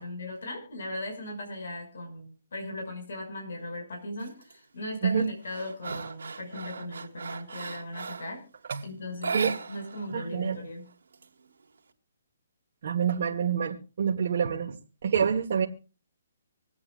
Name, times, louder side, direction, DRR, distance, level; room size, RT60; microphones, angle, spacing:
voice 1, 0.0-8.4 8.8-10.9, left 1 dB, 70° left, 2 dB, 5.6 m, -38 dB
sound 1, 4.2-4.5 5.0-8.4 9.1-10.1 10.4-10.5 10.8-11.8, right 5 dB, 80° right, 1.7 m, -37 dB
voice 2, 10.1-10.6 12.8-14.8 15.0-15.7, right 7 dB, 55° right, -1 dB, 1.3 m, -27 dB
25.5 x 8.7 x 2.4 m, 0.34 s
hypercardioid pair, 155°, 0 cm